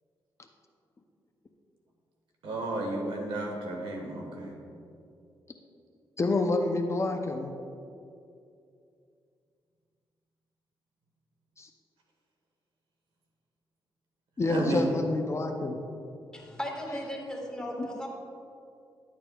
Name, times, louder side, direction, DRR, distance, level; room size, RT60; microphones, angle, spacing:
voice 1, 2.4-4.5 14.4-14.9, right 1 dB, 80° right, 1 dB, 1.5 m, -32 dB
voice 2, 6.2-7.5 11.6-11.7 14.4-15.8 16.9-17.0 17.6-18.1, left 2 dB, 35° left, 4 dB, 0.6 m, -29 dB
voice 3, 16.3-18.1, equal, 10° left, -2 dB, 1.8 m, -37 dB
11.0 x 8.6 x 2.4 m, 2.5 s
cardioid pair, 80°, 9 cm